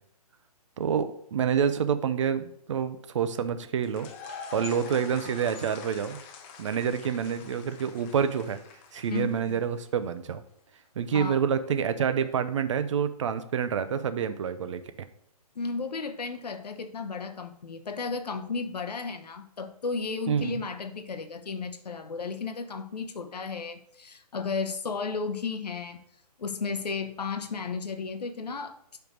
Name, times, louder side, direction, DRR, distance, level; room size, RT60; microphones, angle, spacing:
voice 1, 0.8-4.1 4.5-6.2 6.6-8.6 8.9-10.4 11.0-14.8 20.3-20.6, right 7 dB, 50° right, 11 dB, 0.6 m, -27 dB
sound 1, 3.8-9.8, left 5 dB, 20° left, 0.5 m, -45 dB
voice 2, 9.1-9.6 11.1-11.4 15.5-26.0 26.4-28.8, left 4 dB, 85° left, 9 dB, 0.9 m, -34 dB
5.3 x 4.5 x 6.0 m, 0.70 s
hypercardioid pair, 150°, 20 cm